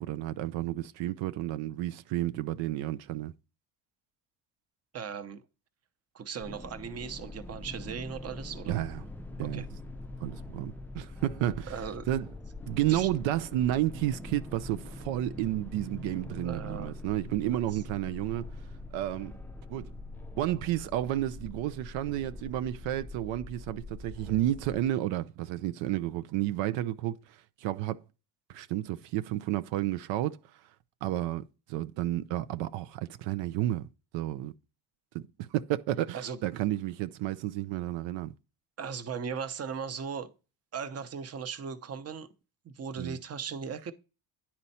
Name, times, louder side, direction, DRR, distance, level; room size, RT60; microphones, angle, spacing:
voice 1, 0.0-3.3 8.7-9.0 9.4-9.7 10.2-11.8 12.1-12.3 12.7-18.5 18.9-19.4 19.7-19.9 20.4-28.0 28.5-30.4 31.0-31.4 31.7-33.9 34.1-34.5 35.1-38.3 43.0-43.2, right 14 dB, 90° right, 0.5 m, -31 dB
voice 2, 4.9-5.4 6.1-8.8 9.4-9.7 11.7-12.1 12.9-13.1 16.4-16.9 17.5-17.8 36.1-36.4 38.8-40.3 40.7-42.3 42.6-43.9, right 6 dB, 35° right, 0.8 m, -38 dB
sound 1, 6.4-24.8, left 2 dB, 5° left, 0.4 m, -43 dB
9.7 x 4.3 x 4.1 m
cardioid pair, 105°, 44 cm